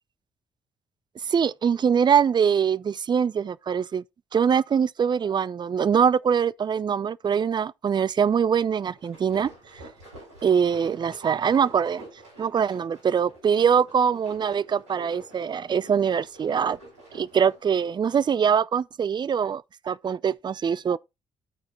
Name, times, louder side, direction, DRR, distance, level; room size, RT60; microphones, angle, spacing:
voice 1, 1.2-4.0 4.3-9.5 10.4-12.0 12.4-16.8 17.1-21.0, right 7 dB, 35° right, 0.3 m, -23 dB
sound 1, 8.8-17.7, right 2 dB, 85° right, 5.8 m, -48 dB
12.5 x 4.4 x 3.3 m
hypercardioid pair, 45°, 14 cm